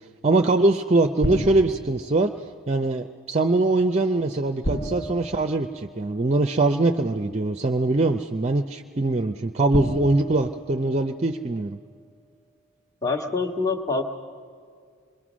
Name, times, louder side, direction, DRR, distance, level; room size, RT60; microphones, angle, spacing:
voice 1, 0.2-2.3 2.7-11.8, right 2 dB, 30° right, 6 dB, 0.5 m, -22 dB
sound 1, 1.2-2.2 4.6-6.3 7.5-7.6 9.7-11.4, equal, 50° left, 1.3 m, -32 dB
voice 2, 13.0-14.0, left 4 dB, 15° left, 2 dB, 1.4 m, -25 dB
26.5 x 22.0 x 6.2 m, 2.1 s
head